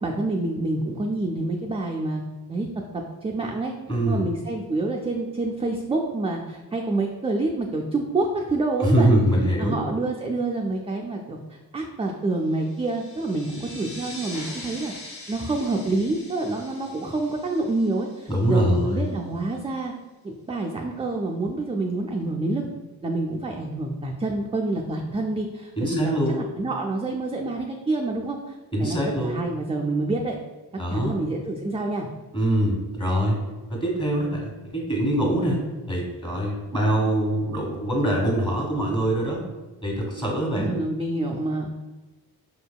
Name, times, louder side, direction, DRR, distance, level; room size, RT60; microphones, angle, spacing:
voice 1, 0.0-2.2 2.5-2.7 2.9-3.7 4.1-9.1 9.6-14.9 15.3-19.9 20.2-22.7 23.0-30.4 30.9-32.1 40.5-41.7, right 2 dB, 15° right, 0 dB, 0.3 m, -27 dB
voice 2, 3.9-4.2 8.8-9.8 18.3-19.0 25.8-26.4 28.7-29.4 30.8-31.2 32.3-33.4 33.7-39.4 39.8-40.7, right 1 dB, 15° left, -1 dB, 1.5 m, -23 dB
sound 1, 12.5-18.7, left 2 dB, 75° left, 1.4 m, -42 dB
4.9 x 2.6 x 2.2 m, 1.2 s
cardioid pair, 55°, 40 cm